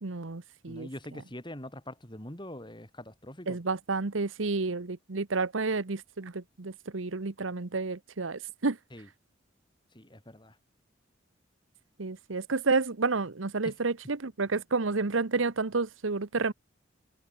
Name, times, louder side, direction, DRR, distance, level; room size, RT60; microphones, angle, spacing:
voice 1, 0.0-0.9 3.5-8.8 12.0-16.5, right 3 dB, 85° right, 1.1 m, -30 dB
voice 2, 0.7-3.6 8.9-9.1 9.9-10.6 13.6-13.7, left 1 dB, 25° left, 6.2 m, -43 dB
head